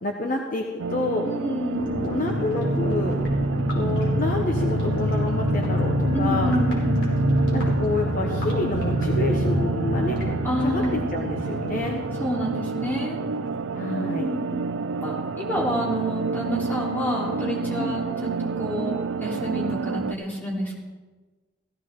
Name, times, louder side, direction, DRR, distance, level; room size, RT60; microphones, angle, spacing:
voice 1, 0.0-1.3 2.0-3.2 3.7-6.5 7.5-10.2 10.6-12.0 13.7-14.3 17.8-18.0, left 2 dB, 45° left, 1 dB, 1.1 m, -28 dB
sound 1, 0.8-20.1, right 5 dB, 70° right, 0.4 m, -30 dB
voice 2, 1.2-1.9 6.1-7.1 10.4-11.1 12.2-13.2 14.0-14.5 15.0-20.8, equal, 10° left, -5 dB, 3.4 m, -28 dB
sound 2, 1.7-14.1 14.4-14.5 14.7-15.0, equal, 65° left, 4.2 m, -26 dB
15.5 x 15.0 x 3.7 m, 1.3 s
head